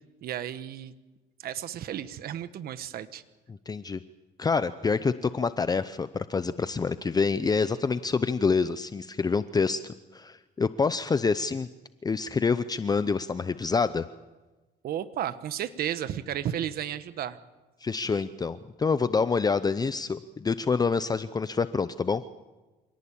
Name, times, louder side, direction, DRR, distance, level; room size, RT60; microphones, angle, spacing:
voice 1, 0.2-0.9 1.4-3.2 14.8-17.4, right 10 dB, 65° right, 12 dB, 1.3 m, -33 dB
voice 2, 3.5-4.0 4.4-11.7 12.0-14.0 17.8-22.2, left 5 dB, 25° left, 13 dB, 0.7 m, -27 dB
26.5 x 18.5 x 8.7 m, 1.2 s
cardioid pair, 110°, 17 cm